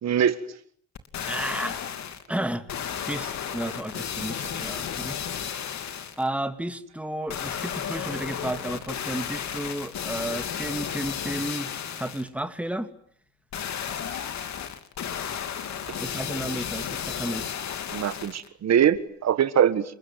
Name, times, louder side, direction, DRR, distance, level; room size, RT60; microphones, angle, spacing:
voice 1, 0.0-0.4 17.9-19.8, right 9 dB, 60° right, 1.7 m, -22 dB
sound 1, 1.0-2.3 2.7-6.3 7.3-12.3 13.5-18.5 19.0-19.1, left 8 dB, 65° left, 3.0 m, -33 dB
voice 2, 1.2-1.8 2.3-2.7 3.1-5.2 6.2-11.7 12.0-12.9 16.0-17.5, right 1 dB, 5° right, 2.6 m, -32 dB
29.5 x 21.0 x 9.4 m
cardioid pair, 90°, 30 cm